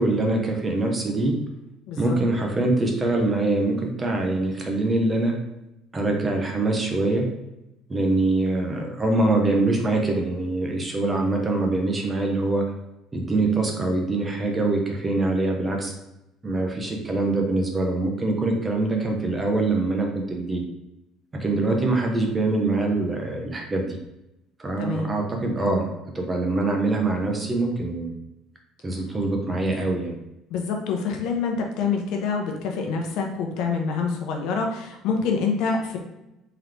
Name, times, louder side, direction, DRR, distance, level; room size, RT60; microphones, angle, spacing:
voice 1, 0.0-1.4 2.0-5.4 5.9-7.3 7.9-12.7 13.1-15.9 16.4-20.6 21.3-23.8 24.6-25.9 26.1-28.1 28.8-30.2, right 2 dB, 15° right, 1 dB, 0.6 m, -24 dB
voice 2, 24.8-25.1 30.5-36.0, left 5 dB, 65° left, 2 dB, 0.8 m, -26 dB
3.8 x 3.1 x 3.3 m, 0.90 s
cardioid pair, 165°, 0 cm